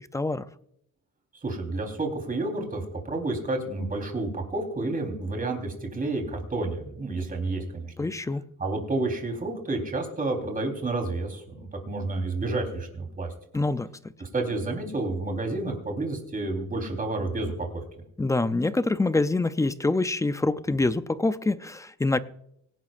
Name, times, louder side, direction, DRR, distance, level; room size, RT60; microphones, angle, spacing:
voice 1, 0.1-0.4 8.0-8.4 13.5-13.9 18.2-22.2, left 2 dB, 10° left, 0.4 m, -25 dB
voice 2, 1.4-7.9 8.6-13.3 14.2-17.8, right 2 dB, 20° right, 3.7 m, -30 dB
25.0 x 11.0 x 2.5 m
cardioid pair, 145°, 37 cm